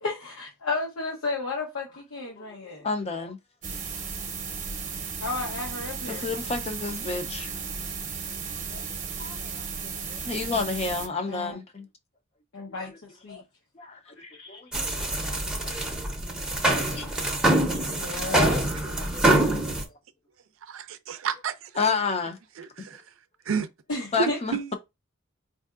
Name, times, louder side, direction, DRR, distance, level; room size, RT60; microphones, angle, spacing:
voice 1, 0.0-2.9 5.2-6.3 11.3-11.6 12.5-13.4 14.3-14.6 17.9-18.6 23.9-24.4, left 3 dB, 85° left, 0.9 m, -33 dB
voice 2, 2.4-3.4 6.1-7.5 8.7-11.9 13.3-13.4 13.8-15.9 16.6-17.1 21.8-22.4 22.8-22.9 24.1-24.7, left 4 dB, 30° left, 0.5 m, -32 dB
sound 1, 3.6-11.1, right 5 dB, 40° right, 0.7 m, -35 dB
sound 2, 14.7-19.8, right 1 dB, 5° right, 0.7 m, -25 dB
voice 3, 20.7-21.7 22.6-23.0 23.5-23.7 24.2-24.7, right 6 dB, 75° right, 0.5 m, -30 dB
4.5 x 2.6 x 2.4 m
head